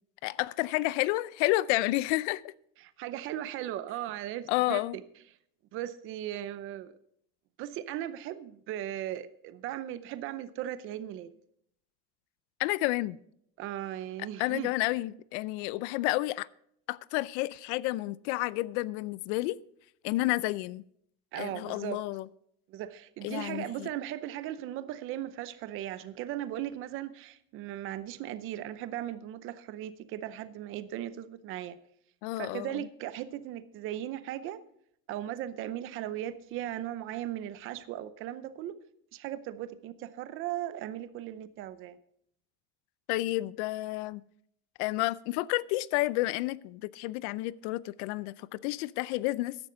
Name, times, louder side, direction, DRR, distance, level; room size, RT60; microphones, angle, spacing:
voice 1, 0.2-2.5 4.5-5.0 12.6-13.2 14.4-16.5 16.9-19.6 20.0-20.8 21.4-22.3 23.2-23.9 32.2-32.9 43.1-44.2 44.8-49.6, left 18 dB, 70° left, 0.5 m, -30 dB
voice 2, 2.8-5.0 5.7-6.9 7.6-11.3 13.6-14.7 21.3-22.0 22.7-31.8 32.4-34.6 35.1-38.7 39.1-42.0, right 12 dB, 35° right, 0.6 m, -37 dB
14.0 x 10.5 x 3.8 m
cardioid pair, 180°, 36 cm